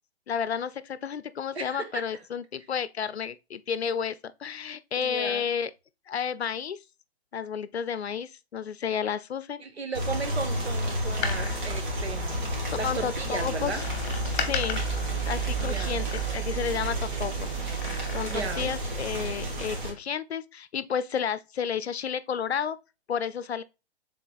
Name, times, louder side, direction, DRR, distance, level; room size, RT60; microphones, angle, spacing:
voice 1, 0.3-4.1 4.4-5.7 6.1-6.8 7.3-9.6 12.8-13.8 14.3-14.8 15.3-17.5 18.1-22.8 23.1-23.6, left 7 dB, 75° left, 0.5 m, -31 dB
voice 2, 1.5-2.1 5.0-5.5 9.6-13.8 15.5-16.0 17.8-18.7, right 4 dB, 75° right, 1.0 m, -36 dB
sound 1, 9.9-19.9, right 2 dB, 45° right, 1.7 m, -30 dB
Door, 11.1-12.8 13.8-16.7 17.6-18.7 19.0-19.1, left 7 dB, 30° left, 0.9 m, -37 dB
6.0 x 3.8 x 2.4 m
figure-of-eight pair, 120°, 32 cm